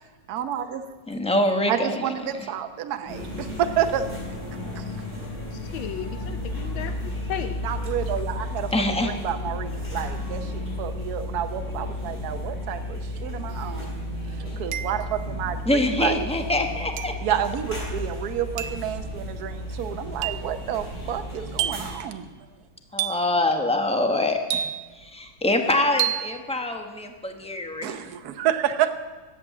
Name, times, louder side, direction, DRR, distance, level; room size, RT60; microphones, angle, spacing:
voice 1, 0.3-0.9 1.7-4.1 4.8-4.9 7.6-8.7 9.0-14.0 14.6-16.5 17.2-22.4 27.8-28.9, right 10 dB, 60° right, 8 dB, 1.2 m, -29 dB
voice 2, 1.1-2.1 8.7-9.1 15.7-17.1 22.9-24.6 24.9-27.9, left 1 dB, 5° left, 4 dB, 0.4 m, -24 dB
sound 1, 3.1-22.0, left 1 dB, 45° left, 6.5 m, -33 dB
voice 3, 5.5-7.6 8.1-8.2, left 9 dB, 75° left, 9 dB, 1.4 m, -35 dB
sound 2, 13.5-13.6 14.7-15.3 17.0-17.3 18.6-18.9 20.2-20.6 21.6-22.0 23.0-23.4 24.5-25.0 26.0-26.3, right 11 dB, 75° right, 0.9 m, -29 dB
14.5 x 8.8 x 7.4 m, 1.3 s
omnidirectional pair, 2.3 m